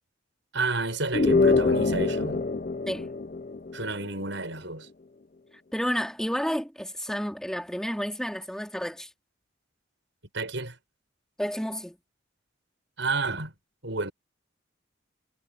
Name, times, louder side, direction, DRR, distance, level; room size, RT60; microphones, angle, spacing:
voice 1, 0.5-2.4 3.7-4.9 10.3-10.8 13.0-13.5 13.8-14.1, right 3 dB, 70° right, 6.9 m, -30 dB
sound 1, 1.1-4.0, left 3 dB, 40° left, 0.6 m, -24 dB
voice 2, 5.7-9.1 11.4-12.0, equal, 5° left, 3.7 m, -31 dB
head